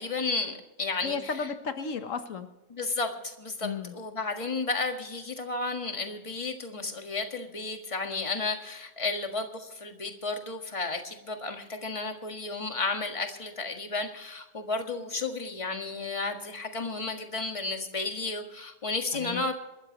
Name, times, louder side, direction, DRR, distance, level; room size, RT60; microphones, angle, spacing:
voice 1, 0.0-1.3 2.7-19.5, left 3 dB, 25° left, 4 dB, 1.7 m, -33 dB
voice 2, 1.0-2.5 3.6-3.9 19.1-19.4, left 5 dB, 90° left, 8 dB, 1.6 m, -34 dB
26.5 x 13.5 x 3.1 m, 0.98 s
omnidirectional pair, 1.3 m